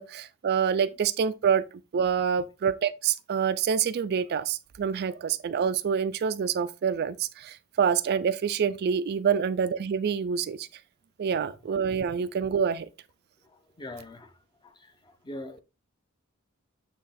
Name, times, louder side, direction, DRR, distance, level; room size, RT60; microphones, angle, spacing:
voice 1, 0.0-1.6 1.9-10.7 11.2-12.9, right 7 dB, 50° right, 0.3 m, -27 dB
voice 2, 13.4-14.3 14.6-15.6, left 1 dB, 20° left, 0.7 m, -43 dB
8.6 x 3.0 x 4.1 m
head